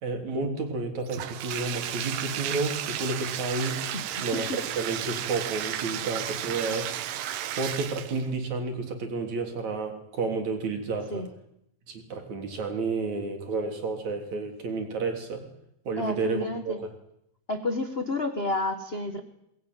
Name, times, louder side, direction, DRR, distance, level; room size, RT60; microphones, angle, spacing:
voice 1, 0.0-3.8 4.2-6.9 7.6-11.2 11.9-15.4 15.9-16.9, right 3 dB, 60° right, 5 dB, 4.5 m, -31 dB
Bathtub (filling or washing), 1.1-8.3, right 11 dB, 90° right, 2.9 m, -33 dB
voice 2, 3.9-4.6 11.1-11.3 16.0-16.8 17.5-19.2, left 2 dB, 30° left, 7 dB, 1.2 m, -31 dB
22.5 x 20.5 x 9.4 m, 0.78 s
omnidirectional pair, 3.8 m